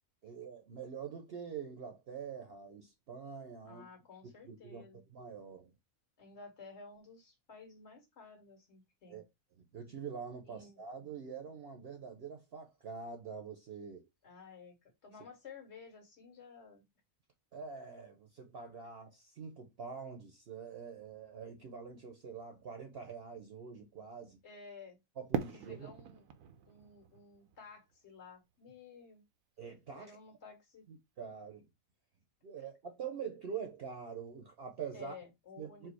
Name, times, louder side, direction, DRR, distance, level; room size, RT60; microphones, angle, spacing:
voice 1, 0.2-3.9 4.4-4.9 5.1-5.7 9.1-9.2 9.6-14.1 17.5-24.4 25.2-25.9 29.6-30.2 30.9-31.7 32.4-35.2 35.6-35.9, right 6 dB, 55° right, 0.9 m, -45 dB
voice 2, 3.6-5.0 6.2-9.2 10.4-10.8 14.2-16.8 24.4-25.0 25.7-26.3 26.6-29.2 29.9-30.9 32.6-32.7 34.9-35.9, left 5 dB, 50° left, 1.7 m, -53 dB
Fireworks, 25.3-28.4, right 8 dB, 75° right, 1.0 m, -41 dB
4.7 x 2.0 x 4.5 m
omnidirectional pair, 1.4 m